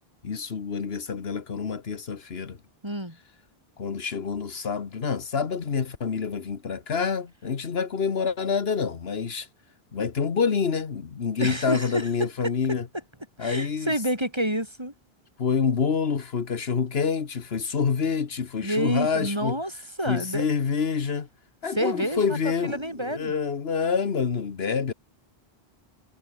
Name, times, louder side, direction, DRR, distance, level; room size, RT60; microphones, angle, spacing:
voice 1, 0.2-2.6 3.8-9.5 9.9-12.9 13.4-13.9 15.4-19.6 20.1-21.3 21.6-24.9, left 6 dB, 75° left, 1.5 m, -27 dB
voice 2, 2.8-3.2 11.4-12.1 13.4-14.9 18.6-20.5 21.8-22.4 22.6-23.3, equal, 25° right, 7.5 m, -28 dB
omnidirectional pair, 1.0 m